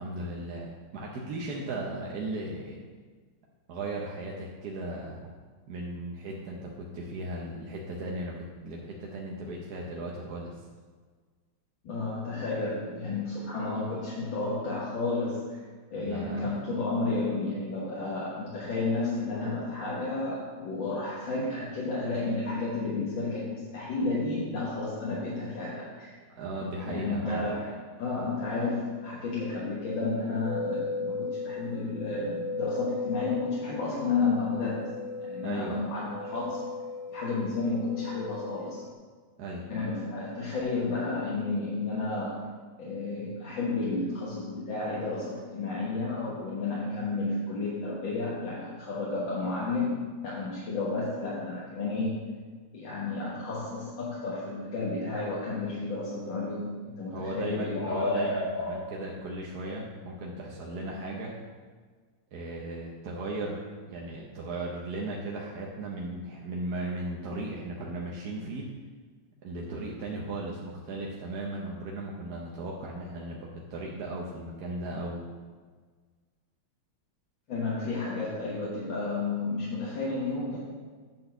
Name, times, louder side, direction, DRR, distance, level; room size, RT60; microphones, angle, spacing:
voice 1, 0.0-2.8 3.7-5.3 5.7-10.5 15.9-16.6 26.4-27.5 35.4-35.8 39.4-39.7 57.1-61.3 62.3-63.6 63.9-68.7 69.4-75.3, right 2 dB, 60° right, -2 dB, 1.3 m, -36 dB
voice 2, 11.8-15.6 15.9-26.1 26.9-27.7 28.0-34.9 35.2-36.7 37.1-38.8 39.7-42.4 42.8-50.0 50.2-52.2 52.7-58.7 77.5-80.6, left 3 dB, 85° left, -7 dB, 2.1 m, -31 dB
sound 1, 30.4-38.9, left 3 dB, 70° left, 0.7 m, -37 dB
9.1 x 4.1 x 6.6 m, 1.5 s
omnidirectional pair, 2.0 m